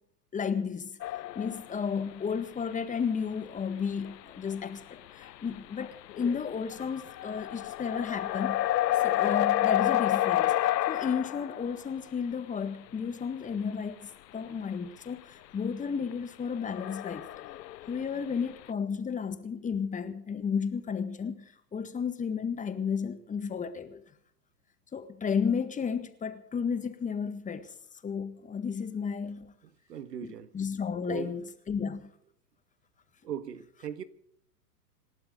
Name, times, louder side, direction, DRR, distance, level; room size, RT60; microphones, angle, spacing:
voice 1, 0.3-0.9 1.3-8.6 9.0-17.3 17.9-24.0 24.9-27.7 28.0-29.5 30.2-32.1, left 6 dB, 15° left, 1.7 m, -33 dB
sound 1, 1.0-1.8 2.6-2.7 4.1-4.2 4.5-4.6 5.2-5.3 5.6-11.9 16.1-16.2 16.5-18.0, left 14 dB, 80° left, 0.6 m, -29 dB
voice 2, 29.9-30.5 31.0-31.3 33.2-34.0, right 9 dB, 75° right, 1.7 m, -38 dB
27.5 x 12.5 x 3.9 m
hypercardioid pair, 105°, 49 cm